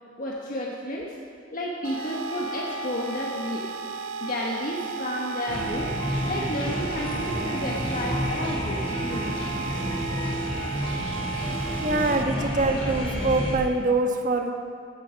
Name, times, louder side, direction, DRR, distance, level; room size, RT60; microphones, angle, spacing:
voice 1, 0.2-1.2 1.5-3.8 4.2-5.9 6.3-9.3 12.3-12.4, equal, 45° left, -2 dB, 1.4 m, -32 dB
sound 1, 1.8-12.2, right 7 dB, 80° right, 0.6 m, -36 dB
Wind instrument woodwind instrument, 1.9-9.9, equal, 80° left, 1.4 m, -40 dB
sound 2, 5.5-13.5, equal, 30° left, 3.4 m, -30 dB
voice 2, 11.8-14.5, right 2 dB, 40° right, 4 dB, 1.3 m, -24 dB
15.0 x 12.5 x 5.2 m, 2.4 s
head